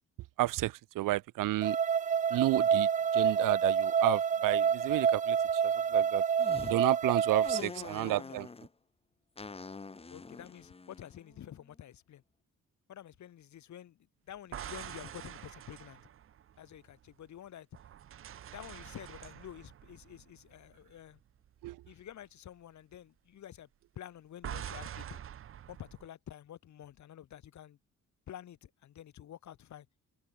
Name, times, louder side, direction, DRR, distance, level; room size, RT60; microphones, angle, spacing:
voice 1, 0.4-1.8 2.3-5.4 5.9-6.2 6.6-8.5 21.6-21.8, right 16 dB, 90° right, 0.7 m, -31 dB
sound 1, 1.6-7.6, right 7 dB, 25° right, 0.4 m, -28 dB
sound 2, 6.4-6.8 7.4-8.7 9.4-11.7, left 4 dB, 20° left, 2.1 m, -45 dB
voice 2, 7.5-8.4 10.1-12.2 12.9-14.0 14.3-16.0 16.6-17.7 18.5-21.2 21.9-23.7 24.0-25.2 25.7-27.8 28.3-29.9, left 11 dB, 65° left, 3.8 m, -49 dB
sound 3, 14.4-17.3 17.7-21.1 21.4-21.7 24.4-26.1, right 10 dB, 45° right, 0.8 m, -45 dB
cardioid pair, 155°, 31 cm